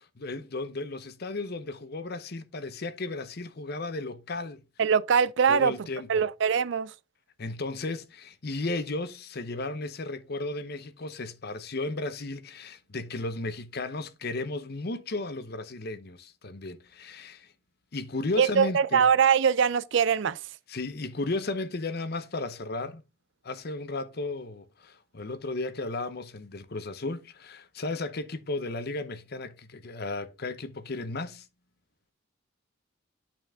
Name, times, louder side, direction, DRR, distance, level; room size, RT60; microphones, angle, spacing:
voice 1, 0.2-4.6 5.5-6.2 7.4-17.5 17.9-19.1 20.7-23.0 23.4-31.5, left 2 dB, 50° left, 0.7 m, -34 dB
voice 2, 4.8-5.7 6.1-6.9 18.4-20.4, right 7 dB, 60° right, 0.4 m, -22 dB
9.0 x 4.5 x 3.4 m
head